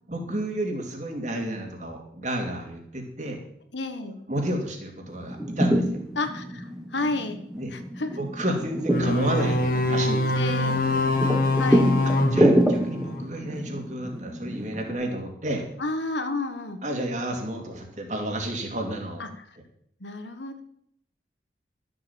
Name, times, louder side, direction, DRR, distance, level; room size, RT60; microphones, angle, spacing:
voice 1, 0.1-3.4 4.0-6.0 7.5-7.7 8.2-10.2 10.6-11.1 12.3-15.6 16.8-19.2, right 1 dB, 40° right, 2 dB, 2.6 m, -31 dB
voice 2, 3.7-4.1 6.1-7.4 7.7-8.2 8.5-8.6 10.3-10.7 11.6-11.9 15.8-16.8 19.2-19.6 20.0-20.6, left 2 dB, 75° left, 8 dB, 1.5 m, -31 dB
sound 1, 5.1-14.9, equal, 5° right, 1.4 m, -27 dB
sound 2, 8.9-13.4, left 2 dB, 50° left, 1.4 m, -24 dB
13.0 x 7.8 x 7.2 m, 0.69 s
head